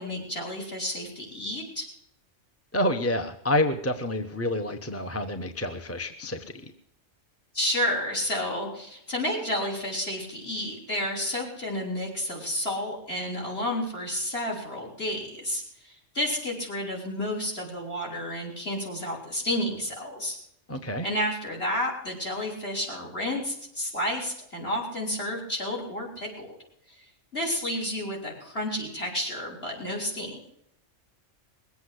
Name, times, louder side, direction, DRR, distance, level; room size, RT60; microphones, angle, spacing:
voice 1, 0.0-1.9 7.5-20.4 21.0-26.6 27.3-30.5, left 1 dB, 50° left, 0 dB, 5.8 m, -31 dB
voice 2, 2.7-6.6 20.7-21.1, left 1 dB, 15° left, 6 dB, 0.9 m, -28 dB
21.5 x 8.3 x 8.0 m, 0.73 s
omnidirectional pair, 1.3 m